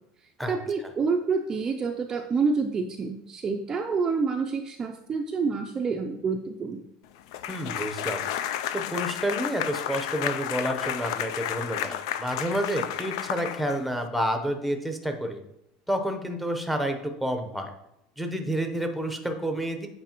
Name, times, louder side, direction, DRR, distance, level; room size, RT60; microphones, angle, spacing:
voice 1, 0.5-6.9, right 4 dB, 25° right, 4 dB, 0.4 m, -28 dB
sound 1, 7.3-14.1, left 11 dB, 80° left, 0.4 m, -32 dB
voice 2, 7.5-8.2 8.7-15.4 15.9-17.7 18.2-19.9, equal, ahead, 5 dB, 0.7 m, -29 dB
8.0 x 4.9 x 3.0 m, 0.81 s
supercardioid pair, 140°, 3 cm